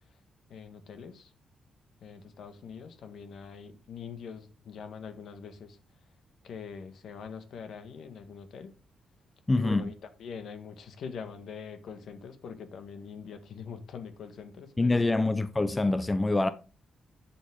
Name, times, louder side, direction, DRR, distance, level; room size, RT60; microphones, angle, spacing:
voice 1, 0.5-1.3 2.0-5.8 6.4-8.7 9.5-9.9 10.2-15.1, left 6 dB, 70° left, 1.6 m, -43 dB
voice 2, 9.5-9.9 14.8-16.5, left 2 dB, 15° left, 0.5 m, -25 dB
10.0 x 7.3 x 3.6 m
cardioid pair, 135°, 0 cm